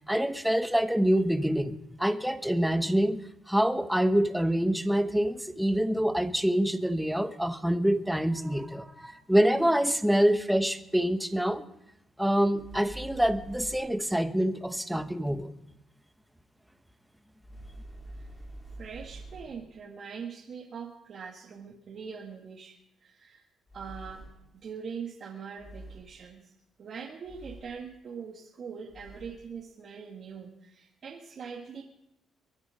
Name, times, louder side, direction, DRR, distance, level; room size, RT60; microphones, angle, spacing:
voice 1, 0.1-3.2 3.5-11.7 12.2-15.5, equal, 5° right, 9 dB, 1.2 m, -26 dB
sound 1, 12.6-14.1 17.4-19.7 23.7-24.6 25.6-26.2 27.2-27.9 28.9-29.4, right 1 dB, 20° left, 3.1 m, -46 dB
voice 2, 18.8-23.5 23.7-24.2 24.6-26.5 26.8-31.8, right 6 dB, 55° right, -1 dB, 1.9 m, -42 dB
23.0 x 9.5 x 5.2 m, 0.79 s
cardioid pair, 90°, 0 cm